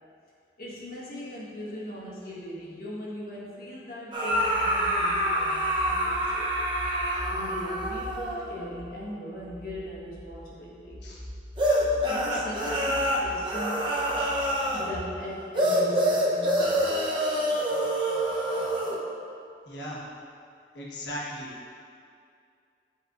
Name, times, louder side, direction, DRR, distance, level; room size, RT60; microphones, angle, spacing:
voice 1, 0.6-6.5 7.3-11.0 12.1-14.1 14.7-16.7, equal, 55° left, -6 dB, 1.4 m, -39 dB
sound 1, 4.1-8.6 11.6-14.9 15.6-19.0, equal, 30° right, 0.8 m, -26 dB
sound 2, 4.3-15.2, equal, 25° left, 0.9 m, -44 dB
voice 2, 19.7-20.0 20.7-21.5, equal, 80° left, -5 dB, 1.3 m, -37 dB
8.4 x 5.2 x 2.5 m, 2.4 s
head